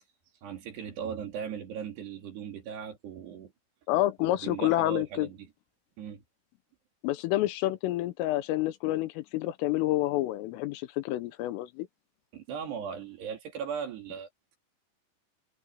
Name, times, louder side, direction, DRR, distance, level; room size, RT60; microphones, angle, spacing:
voice 1, 0.4-3.5 4.2-5.4 6.0-6.2 12.3-14.3, right 7 dB, 60° right, 4.7 m, -38 dB
voice 2, 3.9-5.3 7.0-11.9, left 16 dB, 85° left, 3.5 m, -28 dB
omnidirectional pair, 5.8 m